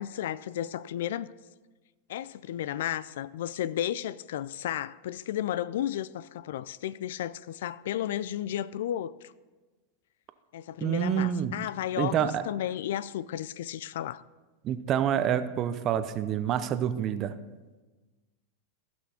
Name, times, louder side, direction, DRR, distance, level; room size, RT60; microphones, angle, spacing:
voice 1, 0.0-1.3 2.1-9.3 10.5-14.2, left 11 dB, 70° left, 0.3 m, -33 dB
voice 2, 10.8-11.5 12.0-12.4 14.6-17.3, right 9 dB, 40° right, 0.7 m, -27 dB
15.0 x 6.1 x 4.3 m
hypercardioid pair, 105°, 0 cm